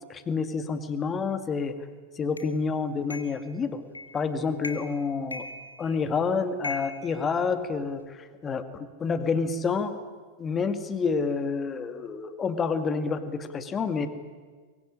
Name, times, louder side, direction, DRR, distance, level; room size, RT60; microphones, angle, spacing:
voice 1, 0.1-1.8 2.2-3.8 4.1-5.5 5.8-10.0 10.4-14.1, left 5 dB, 20° left, 10 dB, 2.2 m, -28 dB
sound 1, 2.4-2.5 3.1-3.4 3.9-4.2 4.6-5.0 5.3-6.1 6.6-7.9, left 2 dB, 85° left, 1.8 m, -39 dB
24.0 x 23.0 x 10.0 m, 1.5 s
figure-of-eight pair, 90°, 0 cm